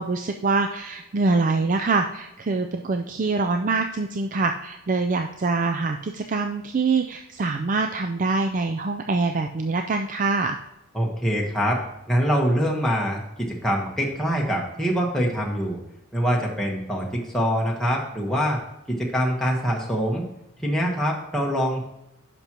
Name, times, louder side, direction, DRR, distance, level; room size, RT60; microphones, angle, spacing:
voice 1, 0.0-10.6, right 3 dB, 40° right, 6 dB, 0.4 m, -24 dB
voice 2, 10.9-11.8 12.1-15.8 16.1-18.6 18.9-20.2 20.6-21.8, equal, ahead, -2 dB, 1.1 m, -24 dB
10.5 x 6.0 x 2.9 m, 0.86 s
head